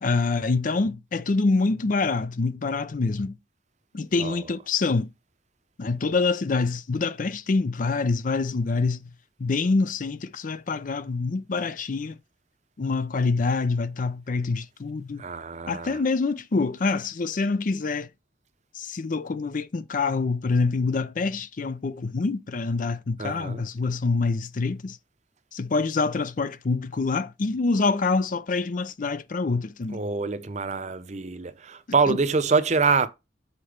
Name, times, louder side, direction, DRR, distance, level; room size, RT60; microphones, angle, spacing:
voice 1, 0.0-3.4 3.9-5.1 5.8-9.1 9.4-12.2 12.8-15.2 15.7-18.1 18.7-25.0 25.5-30.0 32.1-32.2, left 3 dB, 45° left, 0.5 m, -26 dB
voice 2, 4.2-4.6 15.2-16.0 23.2-23.6 29.9-33.1, right 4 dB, 40° right, 0.7 m, -25 dB
6.7 x 4.3 x 5.0 m
head